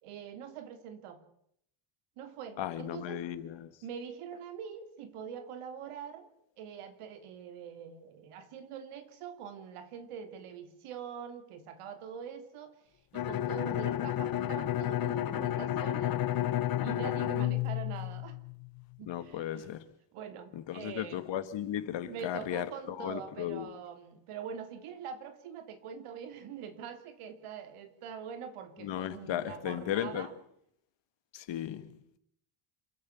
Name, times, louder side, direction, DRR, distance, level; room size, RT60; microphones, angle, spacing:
voice 1, 0.0-1.2 2.2-3.2 3.8-6.3 6.6-12.7 13.1-16.2 16.8-18.4 19.0-19.6 20.1-21.2 22.0-30.3, right 7 dB, 90° right, 3.4 m, -44 dB
voice 2, 2.6-3.7 19.1-19.8 20.5-23.8 28.8-30.3 31.3-32.2, left 11 dB, 60° left, 1.9 m, -36 dB
Bowed string instrument, 13.1-18.8, left 12 dB, 45° left, 0.9 m, -31 dB
27.5 x 13.5 x 8.3 m
cardioid pair, 170°, 49 cm